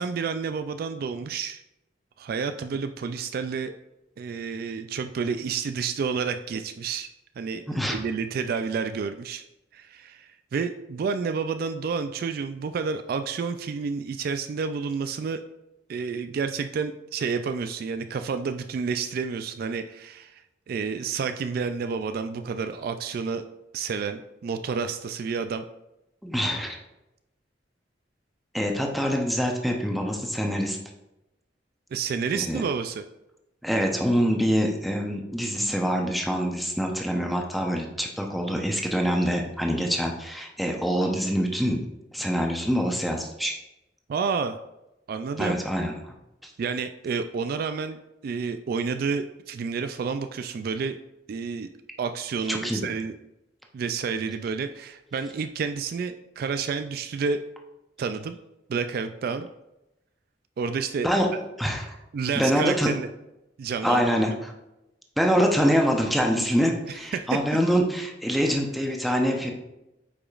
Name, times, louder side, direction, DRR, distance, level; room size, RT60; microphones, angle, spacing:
voice 1, 0.0-1.6 2.2-3.7 4.2-7.1 7.4-9.4 9.7-15.4 15.9-20.4 20.7-23.4 23.7-25.6 31.9-33.0 44.1-44.5 45.1-45.6 46.6-48.0 48.2-51.0 51.3-51.7 52.0-53.1 53.7-57.4 58.0-58.4 58.7-59.5 60.6-61.1 62.1-63.1 63.6-64.0 67.1-67.4, right 5 dB, 55° right, 9 dB, 0.3 m, -30 dB
voice 2, 7.7-8.0 26.2-26.8 28.5-30.8 32.3-32.6 33.6-41.8 42.1-43.5 45.4-46.1 46.4-46.5 52.5-52.8 61.0-61.3 61.6-61.9 62.4-62.9 63.8-64.5 65.2-69.5, equal, ahead, 1 dB, 0.7 m, -25 dB
8.6 x 5.0 x 2.4 m, 0.92 s
head